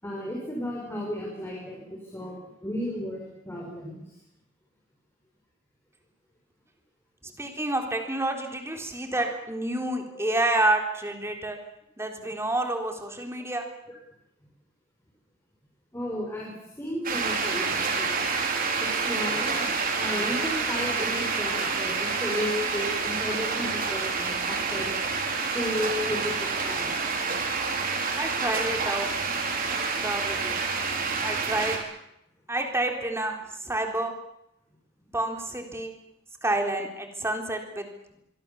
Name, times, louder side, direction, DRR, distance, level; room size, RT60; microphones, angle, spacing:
voice 1, 0.0-4.1 10.1-10.3 13.9-14.0 15.9-18.2 18.8-24.9 25.4-26.9 28.8-28.9, left 1 dB, 10° left, -2 dB, 5.7 m, -34 dB
voice 2, 7.4-11.6 12.0-13.6 28.2-29.1 30.0-30.6 31.2-31.8 32.5-34.1 35.1-35.9 36.4-37.9, right 2 dB, 15° right, 3 dB, 3.8 m, -29 dB
sound 1, 17.0-31.8, right 4 dB, 45° right, 4.5 m, -28 dB
24.5 x 23.5 x 7.2 m, 0.82 s
head